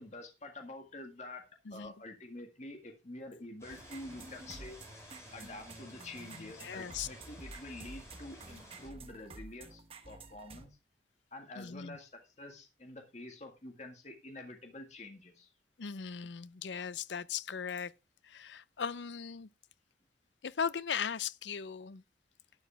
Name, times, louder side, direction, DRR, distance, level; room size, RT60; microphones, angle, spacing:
voice 1, 0.0-1.4 1.7-4.8 5.3-10.8 11.3-15.5, left 2 dB, 40° left, 1.9 m, -48 dB
sound 1, 3.6-8.9, left 1 dB, 15° left, 7.9 m, -54 dB
sound 2, 3.7-10.7, right 2 dB, 30° right, 1.1 m, -51 dB
voice 2, 6.4-7.1 11.6-12.0 15.8-17.9 18.2-19.5 20.4-22.0, left 7 dB, 80° left, 0.6 m, -38 dB
12.0 x 10.0 x 3.4 m
head